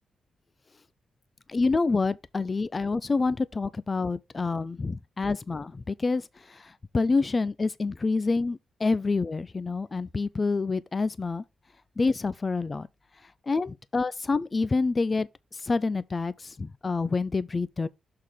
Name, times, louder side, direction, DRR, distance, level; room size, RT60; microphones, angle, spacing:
voice 1, 1.5-11.4 12.0-12.9 13.2-17.9, left 3 dB, 40° left, 0.5 m, -27 dB
6.7 x 3.6 x 6.2 m
supercardioid pair, 60°, 0 cm